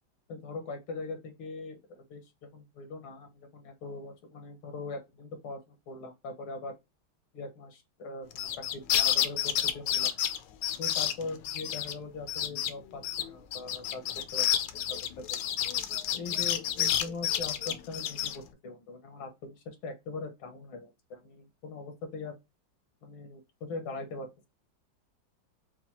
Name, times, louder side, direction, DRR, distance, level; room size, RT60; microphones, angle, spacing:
voice 1, 0.3-6.7 7.3-10.1 10.8-14.0 14.3-15.0 15.3-15.4 16.1-22.4 23.0-24.5, left 3 dB, 85° left, 2.0 m, -41 dB
sound 1, 8.3-11.9 12.3-12.7 13.0-18.4, left 10 dB, 70° left, 1.1 m, -29 dB
5.8 x 2.3 x 2.8 m
omnidirectional pair, 2.2 m